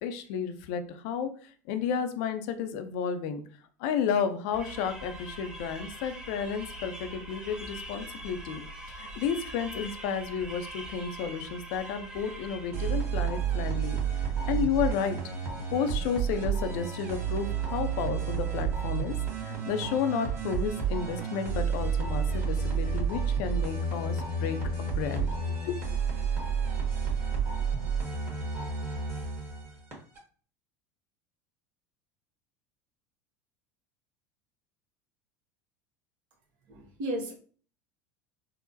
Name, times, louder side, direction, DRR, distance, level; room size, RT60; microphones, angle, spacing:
voice 1, 0.0-3.4 3.8-8.6 8.9-14.0 14.5-15.2 15.7-19.1 19.4-25.8, left 7 dB, 65° left, 9 dB, 0.5 m, -32 dB
sound 1, 4.5-13.1, right 1 dB, 10° right, 0.7 m, -43 dB
sound 2, 12.7-30.2, right 6 dB, 30° right, 1.5 m, -30 dB
voice 2, 36.7-37.3, right 1 dB, 60° right, 0 dB, 1.1 m, -34 dB
3.8 x 2.1 x 2.6 m, 0.43 s
hypercardioid pair, 85°, 9 cm